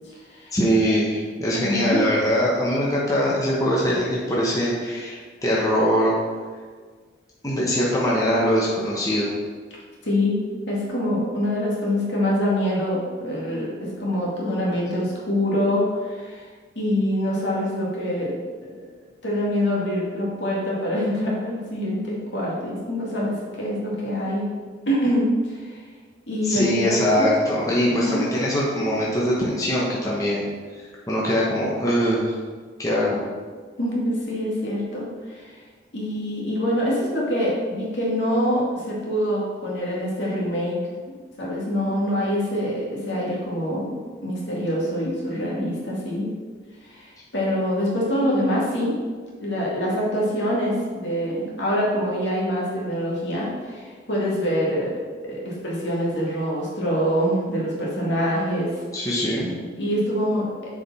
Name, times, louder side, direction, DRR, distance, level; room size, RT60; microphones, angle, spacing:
voice 1, 0.5-6.1 7.4-9.3 26.4-30.4 31.1-32.3 32.8-33.2 58.9-59.5, equal, 20° left, -6 dB, 1.1 m, -22 dB
voice 2, 1.6-2.0 10.0-10.4 10.7-16.5 16.8-18.3 18.6-18.9 19.2-24.5 24.9-25.8 26.3-27.3 27.9-28.3 33.8-35.5 35.9-40.7 41.4-43.9 44.2-46.3 46.9-49.0 49.4-54.9 55.2-58.8 59.8-60.5, equal, 70° left, -5 dB, 2.1 m, -25 dB
6.7 x 5.1 x 4.2 m, 1.6 s
head